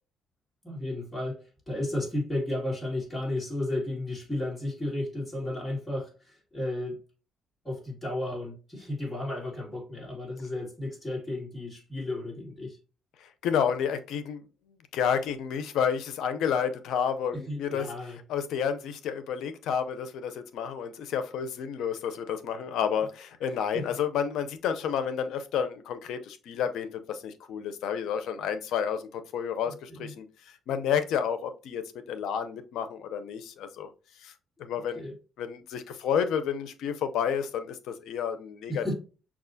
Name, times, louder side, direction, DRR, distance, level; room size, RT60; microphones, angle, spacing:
voice 1, 0.6-7.0 7.6-12.8 17.3-18.2 23.7-23.9 29.6-30.1 35.0-35.1 38.7-38.9, left 1 dB, 15° left, 2.0 m, -33 dB
voice 2, 13.2-14.5 14.9-17.9 18.3-33.9 34.2-34.3 34.6-35.1 35.4-38.8, left 7 dB, 80° left, 0.5 m, -30 dB
5.9 x 2.4 x 2.6 m
cardioid pair, 100°, 0 cm